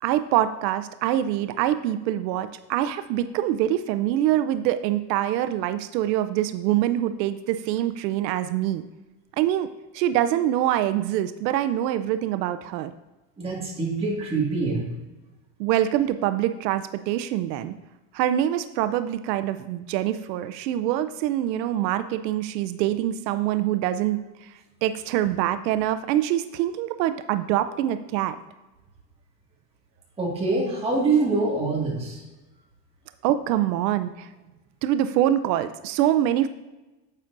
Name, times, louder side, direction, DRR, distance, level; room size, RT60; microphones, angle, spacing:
voice 1, 0.0-8.8 9.4-9.7 9.9-12.9 15.6-17.7 18.1-24.5 24.8-28.4 33.2-34.3 34.8-36.5, right 12 dB, 85° right, 11 dB, 0.6 m, -24 dB
voice 2, 13.4-14.8 30.2-32.2, right 3 dB, 10° right, -4 dB, 1.8 m, -24 dB
9.9 x 7.4 x 2.6 m, 1.1 s
supercardioid pair, 160°, 49 cm